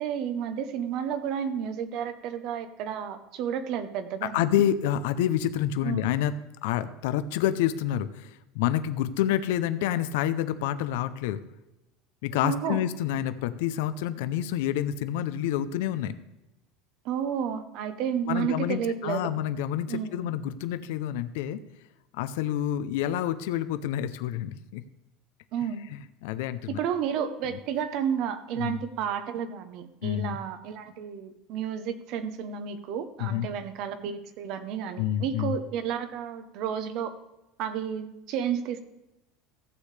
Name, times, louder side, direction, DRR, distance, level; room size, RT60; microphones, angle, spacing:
voice 1, 0.0-4.4 5.8-6.1 12.4-12.8 17.0-19.3 19.9-20.3 25.5-25.8 26.7-37.1 37.6-38.8, right 8 dB, 45° right, 11 dB, 0.8 m, -31 dB
voice 2, 4.2-6.3 6.6-11.4 12.2-16.2 18.3-21.6 22.1-24.8 25.9-26.8 27.5-27.6 28.6-28.8 30.0-30.4 33.2-33.5 35.0-35.6, left 11 dB, 75° left, 12 dB, 0.5 m, -28 dB
14.5 x 8.3 x 3.3 m, 0.94 s
cardioid pair, 175°, 0 cm